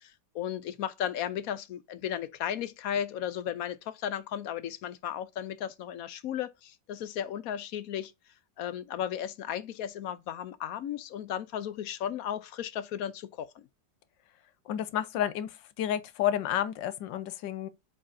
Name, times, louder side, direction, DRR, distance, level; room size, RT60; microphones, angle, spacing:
voice 1, 0.0-8.1 8.6-13.7, left 10 dB, 65° left, 0.9 m, -35 dB
voice 2, 14.7-17.7, left 10 dB, 90° left, 1.4 m, -31 dB
7.5 x 4.8 x 2.7 m
omnidirectional pair, 2.0 m